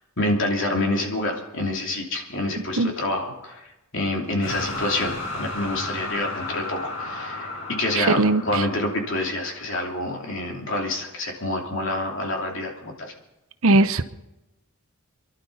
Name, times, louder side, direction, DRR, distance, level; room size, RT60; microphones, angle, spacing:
voice 1, 0.2-3.6 3.9-7.5 7.8-13.1, left 1 dB, 60° left, 1 dB, 3.0 m, -27 dB
sound 1, 4.4-10.4, left 2 dB, 75° left, 7.8 m, -34 dB
voice 2, 8.0-8.7 13.6-14.0, right 2 dB, 70° right, 11 dB, 0.9 m, -19 dB
27.5 x 11.5 x 4.1 m, 0.98 s
head